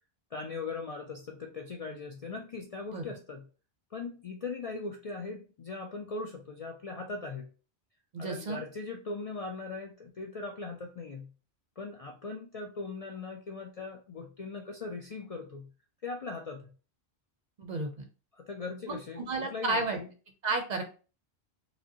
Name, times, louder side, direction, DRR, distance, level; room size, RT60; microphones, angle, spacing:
voice 1, 0.3-3.5 3.9-7.5 8.2-11.3 11.8-15.7 16.0-16.7 18.3-20.1, left 3 dB, 55° left, 2 dB, 0.4 m, -40 dB
voice 2, 8.1-8.6 17.6-18.1 19.2-20.0 20.4-20.8, right 3 dB, 50° right, 5 dB, 0.6 m, -32 dB
4.9 x 2.1 x 2.7 m, 0.36 s
omnidirectional pair, 1.1 m